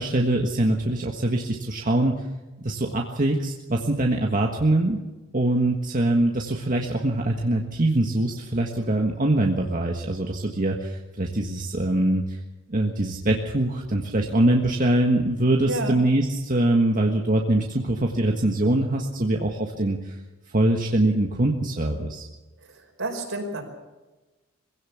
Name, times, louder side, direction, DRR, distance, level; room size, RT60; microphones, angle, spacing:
voice 1, 0.0-2.2 2.6-5.0 5.3-12.4 12.7-20.2 20.5-22.3, right 1 dB, 40° right, 1 dB, 1.6 m, -23 dB
voice 2, 15.7-16.0 22.6-23.6, right 2 dB, 70° right, 3 dB, 4.9 m, -31 dB
22.0 x 16.5 x 7.2 m, 1.2 s
head